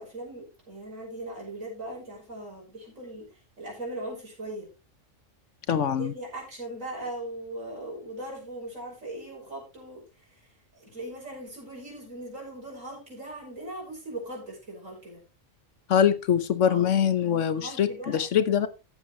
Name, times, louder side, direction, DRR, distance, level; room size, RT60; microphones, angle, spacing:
voice 1, 0.0-3.3 3.6-4.7 5.7-10.0 10.7-15.2 16.6-17.0 17.5-18.2, right 1 dB, 75° right, 6.3 m, -39 dB
voice 2, 5.7-6.1 15.9-18.7, left 8 dB, 70° left, 1.2 m, -23 dB
14.5 x 7.9 x 3.1 m
omnidirectional pair, 1.4 m